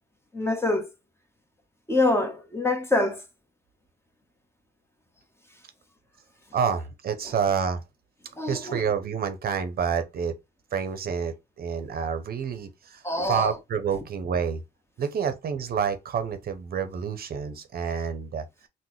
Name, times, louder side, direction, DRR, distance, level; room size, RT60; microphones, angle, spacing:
voice 1, 0.3-0.9 1.9-3.2 8.4-8.8 13.0-13.5, left 2 dB, 15° left, 1.1 m, -25 dB
voice 2, 6.5-7.8 8.5-10.3 10.7-14.6 15.0-18.4, right 7 dB, 55° right, 0.7 m, -28 dB
3.7 x 2.2 x 3.1 m
supercardioid pair, 55°, 19 cm